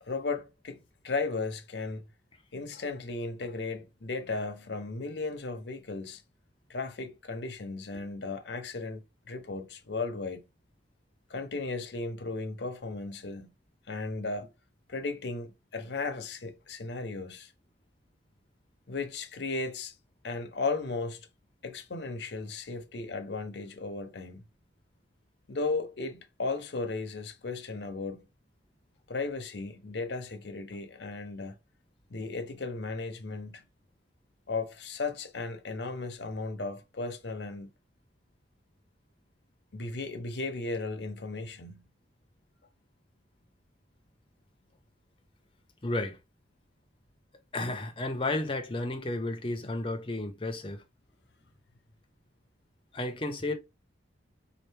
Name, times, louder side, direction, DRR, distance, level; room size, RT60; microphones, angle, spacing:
voice 1, 0.1-2.0 2.5-6.2 6.7-10.5 11.3-13.5 13.9-14.5 14.9-17.5 18.9-20.0 20.2-21.3 21.6-24.4 25.5-28.2 29.1-31.6 32.1-33.7 34.5-37.7 39.7-41.8, left 3 dB, 70° left, 0.7 m, -35 dB
voice 2, 45.8-46.2 47.5-50.8 52.9-53.5, left 2 dB, 30° left, 0.7 m, -32 dB
4.4 x 2.5 x 3.3 m
head